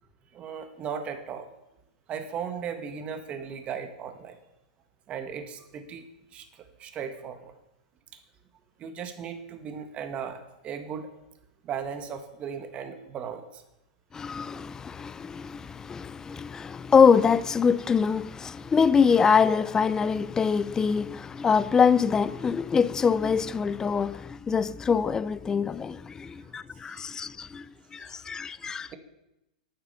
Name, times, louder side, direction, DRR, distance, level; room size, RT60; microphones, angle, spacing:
voice 1, 0.3-1.5 2.1-4.4 5.1-7.5 8.1-8.2 8.8-11.1 11.6-13.6 26.9-27.1 28.0-28.2, right 7 dB, 30° right, 1.8 m, -37 dB
voice 2, 14.1-27.7 27.9-28.9, left 6 dB, 15° left, 0.4 m, -24 dB
11.5 x 9.5 x 6.9 m
hypercardioid pair, 125°, 4 cm